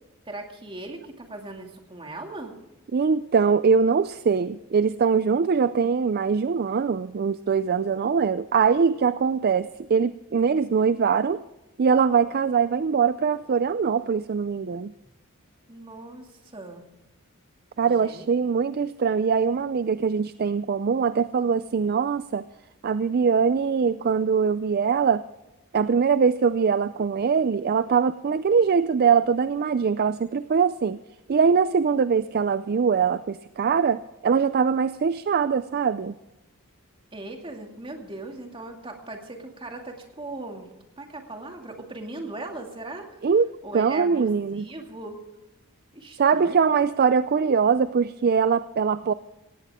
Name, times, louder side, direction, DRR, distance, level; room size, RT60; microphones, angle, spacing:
voice 1, 0.3-2.5 15.7-16.8 17.8-18.3 37.1-40.7 41.0-43.3 43.6-45.1 45.9-46.7, right 2 dB, 25° right, 2 dB, 2.4 m, -38 dB
voice 2, 2.9-11.4 11.8-14.9 17.8-22.5 22.8-25.2 25.7-31.0 31.3-36.2 43.2-43.5 43.7-44.6 46.2-49.1, right 6 dB, 45° right, 14 dB, 0.4 m, -22 dB
17.5 x 17.0 x 3.6 m, 0.95 s
head